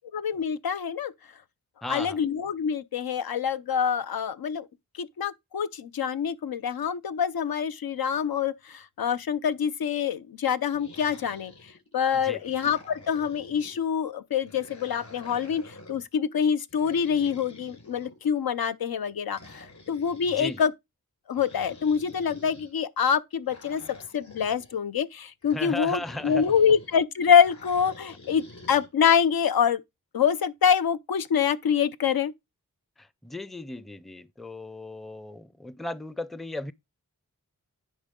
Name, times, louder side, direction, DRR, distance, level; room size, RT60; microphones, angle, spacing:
voice 1, 0.1-1.1 1.9-4.7 5.0-11.5 11.9-20.7 21.3-23.8 24.1-29.8 30.1-32.3, left 7 dB, 80° left, 0.6 m, -25 dB
voice 2, 1.8-2.2 12.1-12.4 20.3-20.6 25.5-26.5 33.0-36.7, left 1 dB, ahead, 0.5 m, -36 dB
sound 1, 10.7-11.9 12.4-13.8 14.4-16.1 16.7-18.4 19.3-20.6 21.3-22.7 23.5-24.8 25.4-27.0 27.4-28.9, left 2 dB, 55° left, 5.0 m, -48 dB
10.0 x 3.9 x 3.7 m
cardioid pair, 50°, 36 cm